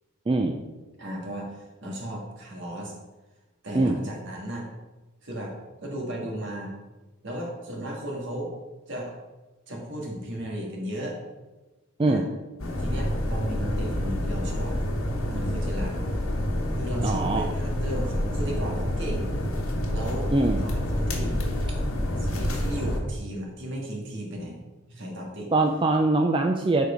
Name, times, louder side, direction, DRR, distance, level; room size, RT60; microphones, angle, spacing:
voice 1, 0.3-0.6 3.7-4.0 12.0-12.2 17.0-17.5 20.3-20.6 25.5-26.9, right 2 dB, 25° right, 4 dB, 0.4 m, -22 dB
voice 2, 1.0-2.9 3.6-4.7 5.2-5.6 5.8-6.8 7.2-8.5 8.9-9.2 9.7-11.2 12.1-12.3 12.8-14.9 15.3-16.0 16.8-19.4 19.9-20.3 20.6-21.4 22.2-24.6 24.9-25.5, right 1 dB, 60° right, -1 dB, 1.8 m, -35 dB
sound 1, 12.6-23.0, left 1 dB, 75° left, 1.3 m, -28 dB
7.1 x 4.7 x 5.0 m, 1.2 s
head